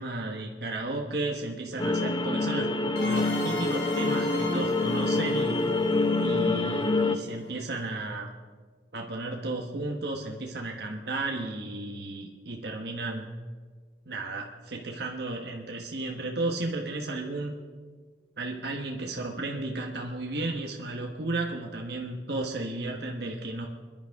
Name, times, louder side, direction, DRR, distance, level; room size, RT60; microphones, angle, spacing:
voice 1, 0.0-2.7 3.0-5.6 6.2-8.3 8.9-13.3 14.1-17.5 18.4-23.7, right 2 dB, 65° right, 1 dB, 1.2 m, -33 dB
sound 1, 1.8-7.2, left 2 dB, 25° left, 0.7 m, -26 dB
sound 2, 2.9-7.5, left 2 dB, 65° left, 3.6 m, -39 dB
25.5 x 11.0 x 3.6 m, 1.5 s
head